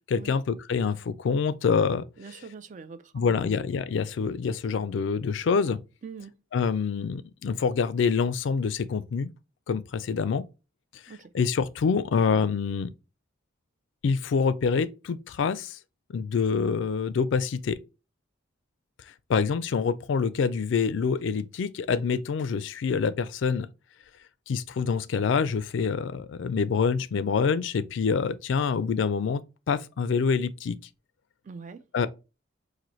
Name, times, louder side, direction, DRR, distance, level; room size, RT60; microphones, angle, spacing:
voice 1, 0.1-2.0 3.1-5.8 6.5-9.3 9.7-10.4 11.0-12.9 14.0-15.8 16.1-17.8 19.3-23.7 24.5-29.4 29.7-30.8 31.9-32.1, left 5 dB, 75° left, 0.4 m, -26 dB
voice 2, 2.2-3.6 6.0-6.3 11.1-11.3 31.4-31.8, right 5 dB, 40° right, 0.4 m, -43 dB
4.0 x 2.6 x 3.0 m
head